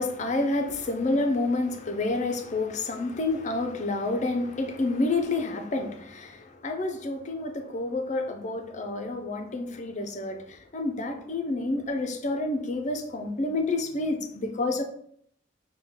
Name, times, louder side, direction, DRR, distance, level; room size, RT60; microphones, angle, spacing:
voice 1, 0.0-14.8, left 2 dB, 40° left, 0.5 m, -29 dB
5.7 x 2.2 x 3.5 m
head